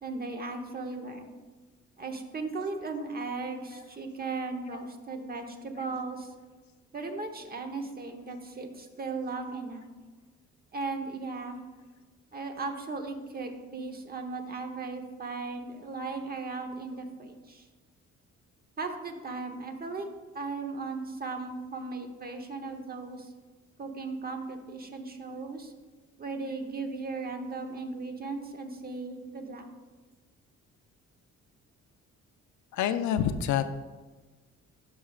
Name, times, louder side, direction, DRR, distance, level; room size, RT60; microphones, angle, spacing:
voice 1, 0.0-1.3 2.0-6.3 6.9-9.9 10.7-11.6 12.3-17.7 18.8-23.3 23.8-25.7 26.2-29.7, right 3 dB, 30° right, 5 dB, 1.0 m, -37 dB
voice 2, 32.7-33.7, left 9 dB, 70° left, 10 dB, 0.5 m, -27 dB
11.5 x 5.0 x 2.4 m, 1.3 s
cardioid pair, 90°, 30 cm